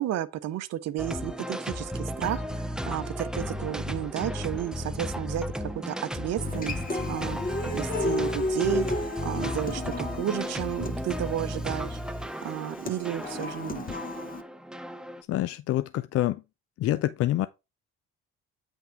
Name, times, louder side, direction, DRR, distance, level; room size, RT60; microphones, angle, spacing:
voice 1, 0.0-6.8 7.1-12.0 12.4-13.9, right 12 dB, 60° right, 0.8 m, -32 dB
sound 1, 1.0-15.2, equal, ahead, 0.6 m, -34 dB
Human voice / Acoustic guitar, 6.4-14.4, left 2 dB, 30° left, 1.1 m, -33 dB
voice 2, 15.3-16.4 16.8-17.5, left 14 dB, 55° left, 0.5 m, -26 dB
8.2 x 3.5 x 4.5 m
supercardioid pair, 75°, 29 cm